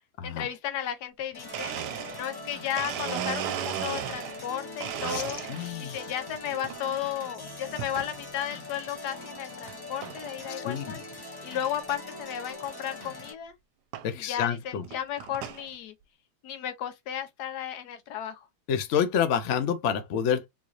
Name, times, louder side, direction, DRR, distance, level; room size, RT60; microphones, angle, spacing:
voice 1, 0.2-1.8 2.2-5.4 5.8-11.0 11.4-13.5 14.1-15.9 16.4-18.5, left 10 dB, 80° left, 1.2 m, -34 dB
Domestic sounds home sounds, 1.2-1.3 1.5-4.5 4.8-5.8 6.3-6.8 7.8-8.1 8.7-8.8 9.7-9.8 10.0-10.4 10.8-10.9 11.1-11.2 11.6-11.7 13.0-13.1 13.9-14.1 14.7-15.7, right 10 dB, 80° right, 1.2 m, -35 dB
sound 1, 1.3-13.3, left 2 dB, 30° left, 0.4 m, -42 dB
voice 2, 5.5-6.0 10.5-11.0 14.0-14.9 18.7-20.5, left 8 dB, 60° left, 0.8 m, -28 dB
3.8 x 3.1 x 2.4 m
omnidirectional pair, 1.8 m